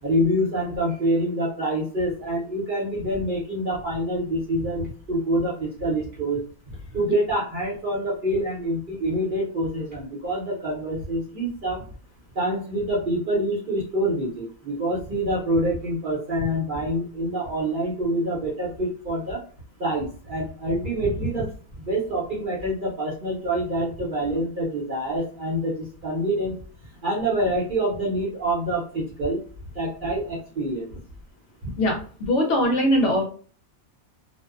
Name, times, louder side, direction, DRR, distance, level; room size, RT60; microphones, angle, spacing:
voice 1, 0.0-11.9 12.3-19.4 19.8-21.5 21.8-26.5 27.0-29.4 29.7-30.9 31.6-31.7, right 1 dB, 45° right, -5 dB, 0.7 m, -26 dB
voice 2, 31.8-33.2, equal, 65° left, 1 dB, 0.8 m, -21 dB
2.5 x 2.1 x 2.3 m, 0.42 s
omnidirectional pair, 1.5 m